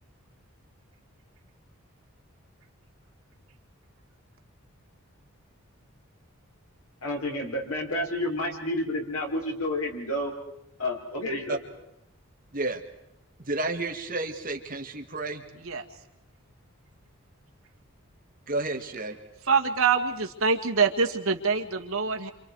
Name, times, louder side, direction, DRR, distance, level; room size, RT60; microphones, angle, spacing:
voice 1, 7.0-10.3 10.8-11.6, left 1 dB, 85° left, 0 dB, 5.3 m, -30 dB
voice 2, 13.4-15.4 18.5-19.2, right 2 dB, 40° right, 3 dB, 1.9 m, -31 dB
voice 3, 19.5-22.3, right 5 dB, 75° right, 3 dB, 2.0 m, -25 dB
28.0 x 27.0 x 4.8 m, 0.83 s
head